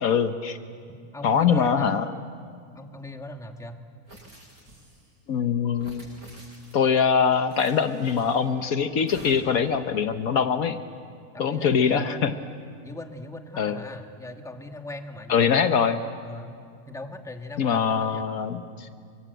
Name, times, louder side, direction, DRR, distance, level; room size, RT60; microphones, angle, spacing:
voice 1, 0.0-0.6 1.2-2.0 5.3-6.1 6.7-10.8 11.4-12.3 13.6-13.8 15.3-16.0 17.6-18.9, left 6 dB, 65° left, 9 dB, 1.4 m, -23 dB
voice 2, 1.1-2.0 2.7-3.8 11.3-12.4 12.8-15.9 16.2-16.5 16.9-18.2, left 2 dB, ahead, 5 dB, 1.4 m, -39 dB
sound 1, 4.1-5.1 5.7-6.9 7.5-8.5 9.1-9.7, right 1 dB, 70° right, 7.2 m, -47 dB
29.0 x 24.5 x 8.0 m, 2.3 s
omnidirectional pair, 1.6 m